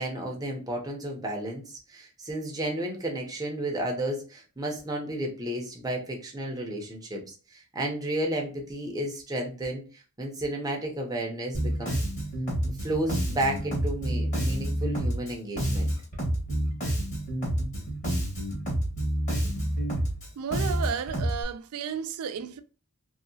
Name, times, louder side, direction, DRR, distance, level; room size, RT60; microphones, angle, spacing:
voice 1, 0.0-7.2 7.5-12.0 12.8-15.9, right 1 dB, 15° right, 0.6 m, -32 dB
Bass guitar, 11.5-21.4, right 1 dB, 35° left, 1.4 m, -29 dB
voice 2, 20.4-22.6, right 7 dB, 70° right, 0.3 m, -33 dB
2.8 x 2.7 x 2.7 m
head